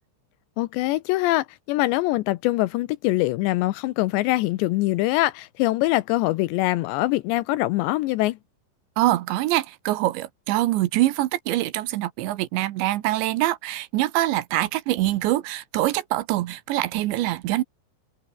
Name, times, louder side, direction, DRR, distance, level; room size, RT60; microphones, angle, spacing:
voice 1, 0.6-8.4, left 18 dB, 80° left, 3.0 m, -23 dB
voice 2, 9.0-17.6, right 16 dB, 85° right, 3.4 m, -24 dB
omnidirectional pair, 5.1 m